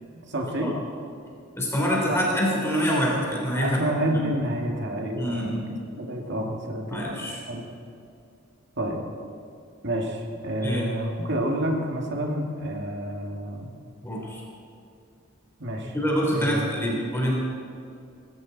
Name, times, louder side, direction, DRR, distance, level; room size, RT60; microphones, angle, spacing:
voice 1, 0.3-0.7 2.1-2.2 3.6-5.6 5.9-7.2 7.5-7.6 8.8-9.0 9.8-13.7 15.6-15.9 16.3-16.7, right 1 dB, 55° right, 1 dB, 2.2 m, -29 dB
voice 2, 1.6-3.8 4.1-4.3 5.1-5.7 6.9-7.4 10.6-10.9 14.0-14.4 15.9-17.4, equal, 10° left, -4 dB, 3.5 m, -25 dB
19.5 x 16.0 x 4.1 m, 2.4 s
head